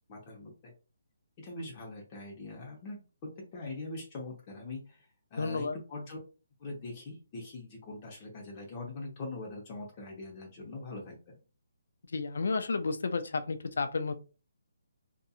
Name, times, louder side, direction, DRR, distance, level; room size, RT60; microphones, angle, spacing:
voice 1, 0.1-0.7 1.4-3.0 3.5-6.2 6.6-11.4, left 2 dB, 30° left, -1 dB, 0.9 m, -42 dB
voice 2, 5.4-5.8 12.1-14.1, left 4 dB, 70° left, 9 dB, 0.4 m, -31 dB
2.7 x 2.4 x 2.4 m, 0.33 s
hypercardioid pair, 155°, 0 cm